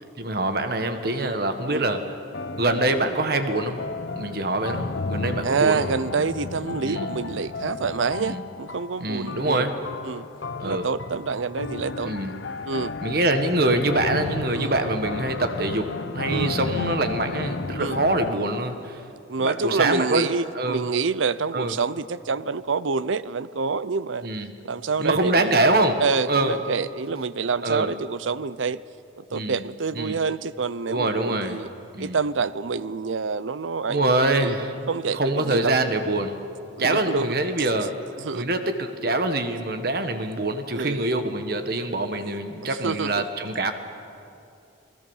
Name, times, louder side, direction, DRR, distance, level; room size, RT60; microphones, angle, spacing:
voice 1, 0.2-2.0 2.6-3.8 4.1-5.8 6.8-7.1 8.2-8.4 9.0-9.8 10.6-10.9 12.0-12.3 13.0-15.9 16.1-19.0 19.4-20.3 20.5-20.9 21.5-21.7 24.2-24.5 25.0-26.0 26.3-26.5 27.6-27.9 29.3-29.6 29.9-30.2 30.9-31.6 31.9-32.2 33.9-34.7 35.1-36.4 36.8-37.9 38.3-43.7, right 2 dB, 55° right, 7 dB, 1.5 m, -24 dB
sound 1, 1.2-1.7 2.3-18.3, left 3 dB, 75° left, 0.8 m, -33 dB
voice 2, 5.4-9.7 10.0-10.3 10.6-12.1 12.7-12.9 14.5-14.7 16.2-16.6 17.8-18.0 19.3-24.3 24.6-25.6 26.0-28.8 29.2-31.7 32.0-34.1 34.4-35.8 36.8-37.4 38.2-38.4 40.7-41.1 42.7-43.2, right 5 dB, 90° right, 17 dB, 0.6 m, -27 dB
29.5 x 20.0 x 7.3 m, 2.6 s
head